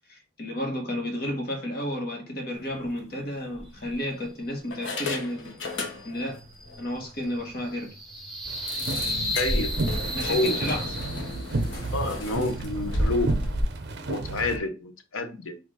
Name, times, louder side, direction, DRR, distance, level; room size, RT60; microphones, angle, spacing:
voice 1, 0.1-5.6 6.0-6.4 6.8-7.9 8.8-9.4 10.1-10.9, left 1 dB, 50° left, 1.2 m, -32 dB
sound 1, 2.7-2.9 3.6-4.2 4.7-6.4 6.7-6.8 7.2-7.3 7.7-7.8 8.7-13.6, left 1 dB, 70° left, 1.0 m, -32 dB
sound 2, 5.7-11.7, equal, ahead, 1.2 m, -34 dB
sound 3, 8.5-14.6, right 2 dB, 55° right, 0.6 m, -32 dB
voice 2, 9.4-9.8 10.3-10.6 11.9-13.3 14.1-15.6, left 2 dB, 90° left, 0.8 m, -28 dB
4.3 x 2.5 x 4.7 m
head